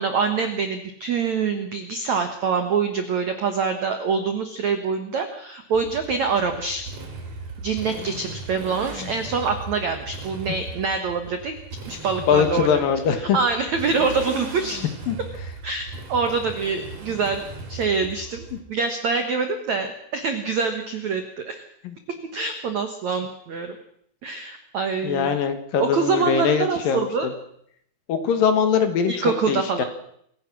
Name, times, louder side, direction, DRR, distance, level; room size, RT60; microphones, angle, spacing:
voice 1, 0.0-6.8 7.6-11.6 11.9-14.8 15.6-21.6 22.3-23.7 24.2-25.4 25.8-27.3 29.1-29.8, right 5 dB, 80° right, 7 dB, 1.6 m, -25 dB
Motorcycle, 5.7-18.6, right 3 dB, 45° right, 4.1 m, -37 dB
voice 2, 12.3-13.4 15.1-15.2 21.8-21.9 25.0-27.3 28.1-29.1 29.5-29.8, left 7 dB, 60° left, 9 dB, 2.6 m, -22 dB
27.0 x 15.5 x 6.2 m, 0.71 s
omnidirectional pair, 5.6 m